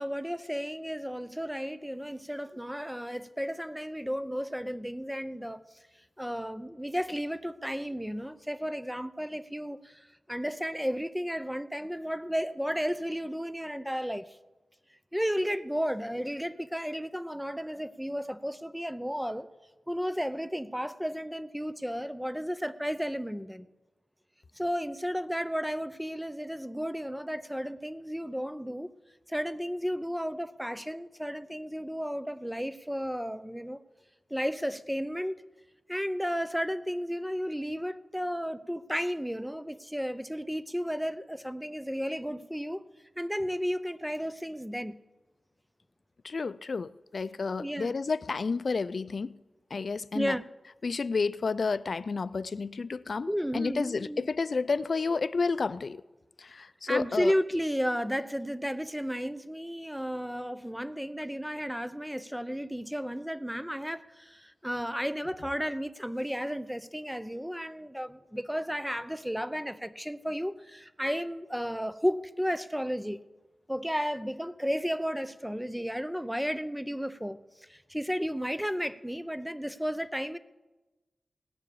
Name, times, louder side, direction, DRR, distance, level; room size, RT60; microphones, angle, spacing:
voice 1, 0.0-5.6 6.2-14.3 15.1-19.5 19.9-23.7 24.5-28.9 29.3-33.8 34.3-35.4 35.9-42.8 43.2-45.0 47.6-48.0 50.1-50.4 53.3-54.3 56.9-73.2 73.7-77.4 77.7-80.4, equal, ahead, 0.5 m, -33 dB
voice 2, 46.2-49.3 49.7-50.4 50.8-56.0 56.4-57.3, left 4 dB, 55° left, 0.4 m, -31 dB
18.0 x 7.0 x 8.3 m
wide cardioid pair, 120°, 0 cm